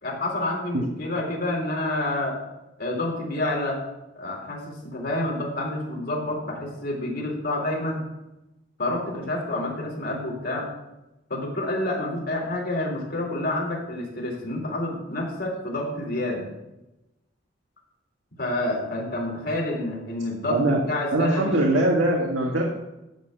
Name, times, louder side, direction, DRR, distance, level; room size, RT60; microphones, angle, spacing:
voice 1, 0.0-2.4 2.8-3.8 4.2-8.0 8.8-10.7 11.3-16.5 18.4-21.7, left 1 dB, 55° left, -2 dB, 3.7 m, -28 dB
voice 2, 21.1-22.6, right 1 dB, 90° right, -2 dB, 1.8 m, -22 dB
12.5 x 4.3 x 8.1 m, 0.94 s
head